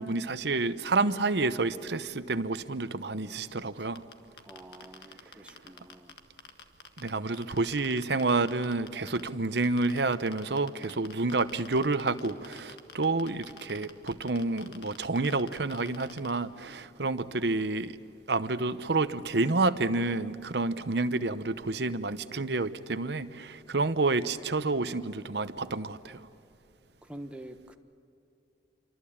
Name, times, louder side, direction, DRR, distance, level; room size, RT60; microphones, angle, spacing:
voice 1, 0.0-4.0 7.0-18.0 18.3-26.2, right 3 dB, 65° right, 12 dB, 0.9 m, -29 dB
sound 1, 4.0-7.1 7.3-9.3 9.6-16.3, left 6 dB, 60° left, 1.7 m, -47 dB
voice 2, 4.4-6.1 27.0-27.8, right 1 dB, 5° right, 6 dB, 1.2 m, -47 dB
27.0 x 24.0 x 8.7 m, 2.6 s
head